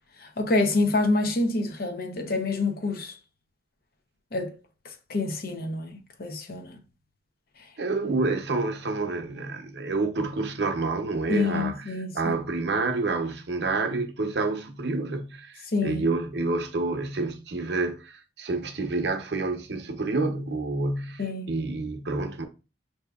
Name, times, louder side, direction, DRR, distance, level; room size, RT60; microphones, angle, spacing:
voice 1, 0.2-3.1 4.3-4.5 5.1-6.8 11.3-12.3 15.7-16.0 21.2-21.5, left 3 dB, 50° left, 0.6 m, -27 dB
voice 2, 7.8-22.4, right 3 dB, 65° right, 0.7 m, -28 dB
5.8 x 2.7 x 2.3 m
head